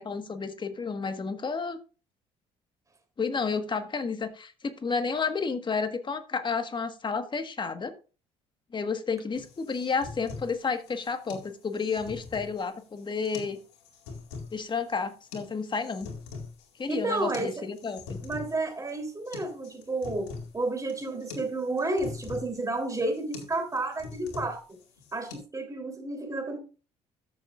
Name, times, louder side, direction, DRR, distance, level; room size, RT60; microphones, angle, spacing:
voice 1, 0.0-1.8 3.2-7.9 8.7-13.6 14.5-16.1 16.8-18.2, left 5 dB, 35° left, 8 dB, 1.6 m, -31 dB
sound 1, 9.4-25.4, left 4 dB, 90° left, 2.2 m, -44 dB
voice 2, 16.9-17.5 18.2-24.8 25.1-26.6, right 2 dB, 25° right, 5 dB, 3.5 m, -31 dB
13.5 x 7.0 x 2.5 m, 0.35 s
hypercardioid pair, 65°, 14 cm